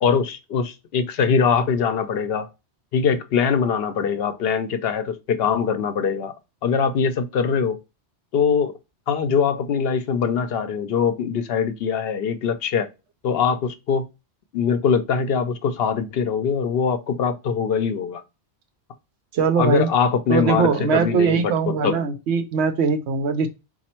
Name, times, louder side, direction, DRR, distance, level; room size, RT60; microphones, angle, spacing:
voice 1, 0.0-2.5 2.9-6.3 6.6-7.8 8.3-8.8 9.1-12.9 13.2-14.1 14.5-18.2 19.6-22.0, left 6 dB, 70° left, 0.8 m, -22 dB
voice 2, 19.3-19.9 20.3-23.5, right 6 dB, 85° right, 0.9 m, -21 dB
4.1 x 2.4 x 4.3 m
omnidirectional pair, 1.1 m